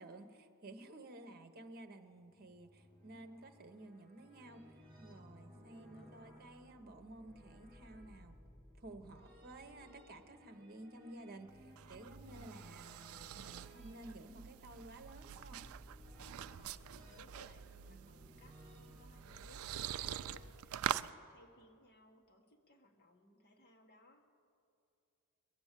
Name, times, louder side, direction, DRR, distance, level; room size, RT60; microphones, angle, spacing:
voice 1, 0.0-4.6 5.0-8.4 8.8-15.6 17.9-18.1, right 2 dB, 45° right, 6 dB, 0.9 m, -53 dB
sound 1, 2.2-20.5, equal, 25° right, 2.7 m, -59 dB
voice 2, 5.5-6.5 12.3-12.6 16.3-24.3, left 1 dB, 45° left, 2 dB, 1.5 m, -65 dB
sound 2, 11.5-21.1, right 10 dB, 65° right, 0.3 m, -45 dB
21.5 x 7.9 x 7.4 m, 2.6 s
head